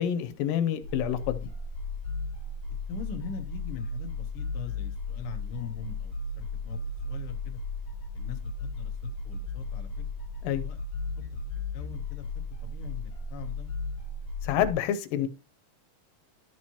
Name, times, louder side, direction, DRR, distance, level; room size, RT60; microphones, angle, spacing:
voice 1, 0.0-1.5 10.4-10.6 14.4-15.3, left 10 dB, 90° left, 10 dB, 2.4 m, -28 dB
sound 1, 0.8-14.7, left 3 dB, 45° left, 2.1 m, -35 dB
voice 2, 2.9-7.6 8.1-10.0 10.6-10.8 11.1-12.3 12.6-13.7, left 7 dB, 70° left, 5 dB, 1.3 m, -42 dB
12.0 x 4.6 x 2.9 m, 0.34 s
omnidirectional pair, 3.9 m